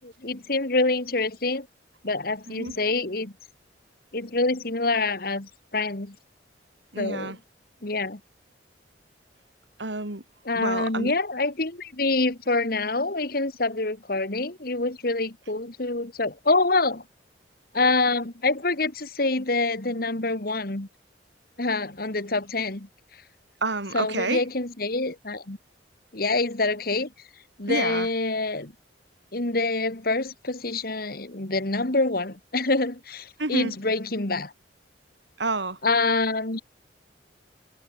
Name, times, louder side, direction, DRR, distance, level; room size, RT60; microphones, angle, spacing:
voice 1, 0.0-1.7 2.0-3.3 4.1-6.2 7.0-7.4 7.8-8.2 10.5-17.0 17.7-20.9 21.6-22.9 23.9-25.6 26.1-27.1 27.6-28.7 29.3-34.5 35.8-36.6, left 3 dB, 55° left, 2.1 m, -26 dB
voice 2, 6.9-7.4 9.8-10.2 10.5-11.1 23.6-24.4 27.7-28.1 33.4-33.7 35.4-35.8, right 3 dB, 75° right, 2.9 m, -29 dB
head